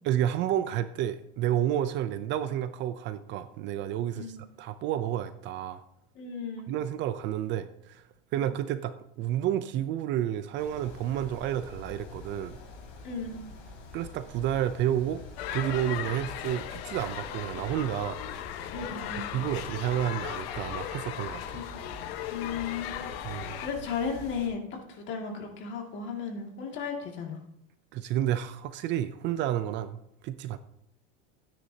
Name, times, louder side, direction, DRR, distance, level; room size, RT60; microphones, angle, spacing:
voice 1, 0.0-5.8 6.7-8.0 8.3-12.6 13.9-15.2 15.5-18.2 19.3-21.6 23.2-23.6 27.9-30.6, right 11 dB, 40° right, 12 dB, 0.5 m, -30 dB
voice 2, 6.2-6.7 8.4-8.5 13.0-13.4 18.7-19.3 21.5-21.8 22.3-24.6 24.9-27.4, left 5 dB, 40° left, 1 dB, 2.2 m, -35 dB
sound 1, 10.6-24.5, left 3 dB, 60° left, 3.9 m, -47 dB
sound 2, 15.4-23.7, left 11 dB, 85° left, 1.1 m, -37 dB
13.5 x 9.7 x 2.8 m, 0.77 s
supercardioid pair, 155°, 29 cm